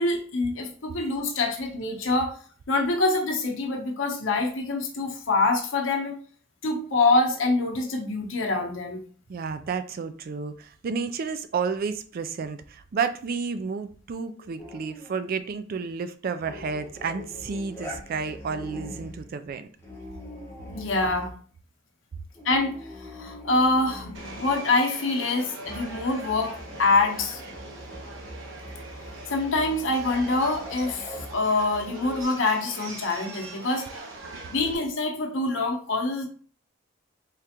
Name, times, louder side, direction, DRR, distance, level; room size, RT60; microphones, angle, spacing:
voice 1, 0.0-2.3 2.7-6.2 6.6-9.0 20.7-21.3 22.4-27.4 29.3-33.8 34.5-36.3, left 3 dB, 80° left, 3 dB, 0.8 m, -25 dB
voice 2, 9.3-19.7, right 5 dB, 50° right, 10 dB, 0.3 m, -31 dB
sound 1, 14.6-15.3 16.4-19.3 19.8-21.4 22.3-24.6 25.6-32.2, left 1 dB, 15° left, 1.0 m, -42 dB
Subway metro underground, 24.1-34.7, right 2 dB, 85° right, 0.9 m, -41 dB
3.7 x 3.2 x 2.9 m, 0.43 s
head